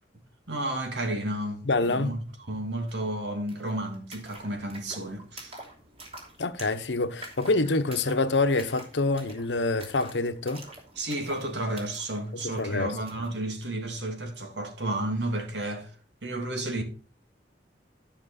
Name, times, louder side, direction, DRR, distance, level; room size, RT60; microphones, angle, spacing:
voice 1, 0.5-5.6 11.0-15.9 16.2-16.8, right 1 dB, 80° right, 2.7 m, -32 dB
voice 2, 1.6-2.1 6.4-10.6 12.3-13.0, left 3 dB, 90° left, 1.0 m, -26 dB
sound 1, 2.9-3.0 3.2-13.4, right 2 dB, 35° right, 3.0 m, -48 dB
12.5 x 5.9 x 4.2 m
head